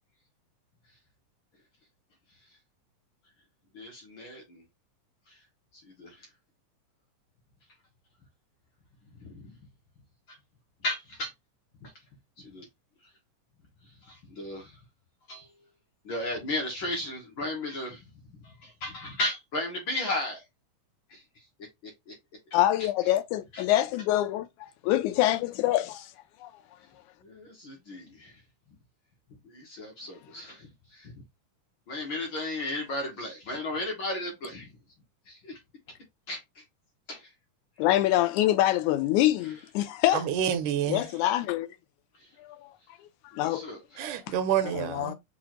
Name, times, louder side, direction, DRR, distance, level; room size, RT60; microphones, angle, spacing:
voice 1, 3.7-4.6 5.3-5.4 5.7-6.3 9.2-9.6 10.3-10.4 10.8-11.3 11.8-11.9 12.4-12.7 13.8-14.8 15.3-15.5 16.0-18.0 18.3-20.4 21.1-21.4 21.8-22.1 22.5-22.9 23.5-23.6 27.2-28.4 29.4-31.1 31.9-34.7 35.3-35.6 36.3-36.6 37.1-37.3 39.4-39.5 42.2-42.3 43.3-44.2, left 1 dB, 65° left, 1.2 m, -35 dB
voice 2, 22.5-26.1 26.4-26.5 37.8-40.3 40.9-41.7 42.4-42.7 43.3-43.7 44.0-44.1 44.7-45.1, left 14 dB, 80° left, 1.9 m, -25 dB
voice 3, 40.1-41.0 44.0-45.1, right 9 dB, 85° right, 2.2 m, -28 dB
6.1 x 2.4 x 2.9 m
omnidirectional pair, 3.6 m